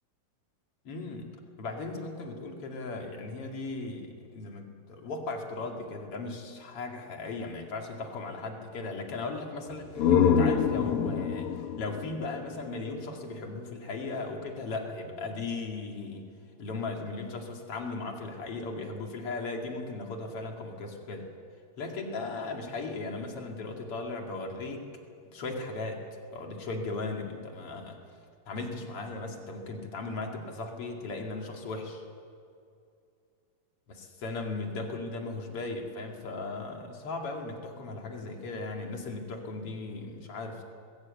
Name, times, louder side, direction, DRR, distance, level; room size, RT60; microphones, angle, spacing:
voice 1, 0.8-16.3 16.6-21.3 21.8-24.9 25.2-26.1 26.3-28.0 28.5-32.0 33.9-40.6, left 3 dB, 45° left, 2 dB, 2.8 m, -37 dB
sound 1, 9.7-13.4, left 7 dB, 85° left, 1.2 m, -26 dB
21.0 x 16.0 x 8.2 m, 2.4 s
omnidirectional pair, 4.1 m